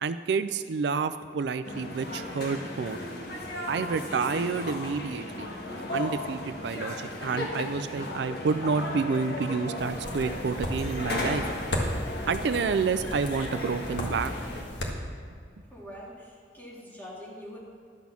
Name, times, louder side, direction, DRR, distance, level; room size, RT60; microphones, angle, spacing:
voice 1, 0.0-3.0 3.7-5.5 5.9-11.4 12.3-14.3, right 5 dB, 70° right, 11 dB, 0.4 m, -29 dB
sound 1, 1.6-14.6, left 1 dB, 65° left, 1.5 m, -36 dB
sound 2, 9.8-14.9, equal, 85° left, 1.6 m, -35 dB
voice 2, 15.7-17.6, equal, 10° left, -6 dB, 2.9 m, -44 dB
11.5 x 6.1 x 7.1 m, 2.2 s
head